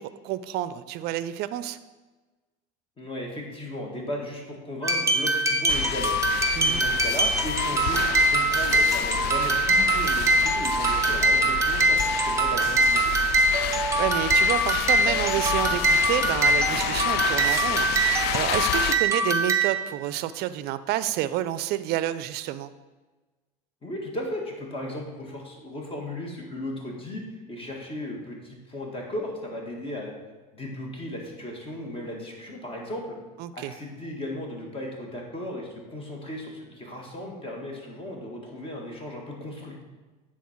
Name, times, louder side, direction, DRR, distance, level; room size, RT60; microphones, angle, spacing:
voice 1, 0.0-1.8 6.6-6.8 14.0-17.9 18.3-22.7 33.4-33.7, right 13 dB, 55° right, 14 dB, 0.5 m, -29 dB
voice 2, 3.0-6.2 6.7-13.1 23.8-27.2 27.5-30.1 30.5-33.2 33.5-39.8, left 1 dB, 25° left, 0 dB, 2.0 m, -36 dB
sound 1, 4.8-19.9, right 2 dB, 15° right, 1.2 m, -23 dB
sound 2, 5.7-19.0, left 11 dB, 55° left, 0.4 m, -31 dB
9.3 x 4.2 x 4.5 m, 1.2 s
hypercardioid pair, 85°, 20 cm